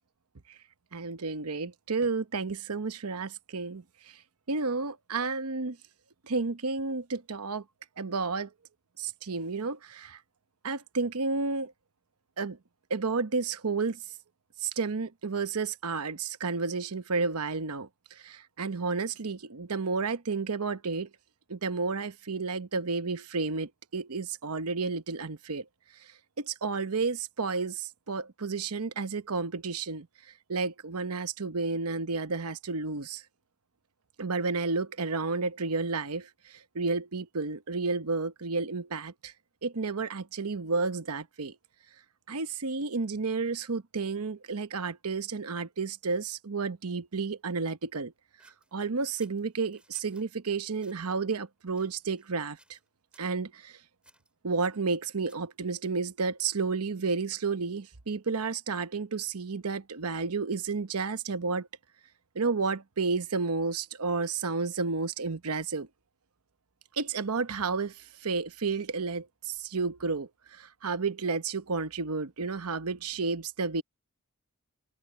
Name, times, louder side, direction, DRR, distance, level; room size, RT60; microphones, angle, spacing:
voice 1, 0.9-3.8 4.5-5.8 6.3-7.6 8.0-8.5 9.0-10.2 10.6-11.7 12.4-12.6 12.9-14.0 14.6-17.9 18.2-21.1 21.5-25.7 26.4-30.1 30.5-33.2 34.2-39.3 39.6-41.6 42.3-48.1 48.7-52.8 53.2-53.8 54.4-61.7 62.3-65.9 66.9-73.8, right 4 dB, 85° right, 1.0 m, -31 dB
sound 1, 48.4-50.3 50.8-51.1 51.7-52.3 52.6-52.9 53.1-53.4 54.0-55.6, right 1 dB, 5° right, 5.9 m, -62 dB
head